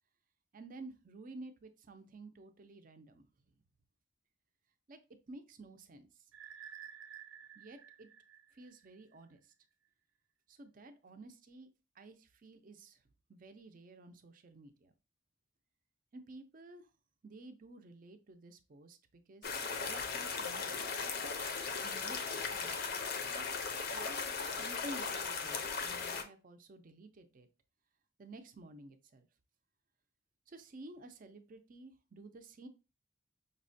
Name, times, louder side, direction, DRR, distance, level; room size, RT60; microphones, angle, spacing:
voice 1, 0.5-3.3 4.9-5.0 5.3-6.1 7.5-8.1 8.5-9.5 10.5-11.7 11.9-13.0 13.3-14.9 16.1-16.9 17.2-19.0 19.3-19.6 19.8-20.9 21.8-22.9 23.2-23.6 23.9-24.2 24.4-27.5 28.2-29.3 30.5-32.7, right 2 dB, 45° right, 8 dB, 0.5 m, -52 dB
sound 1, 6.3-9.2, right 9 dB, 85° right, 0.7 m, -52 dB
sound 2, 19.4-26.2, left 5 dB, 50° left, 0.5 m, -37 dB
5.2 x 2.1 x 2.5 m, 0.30 s
head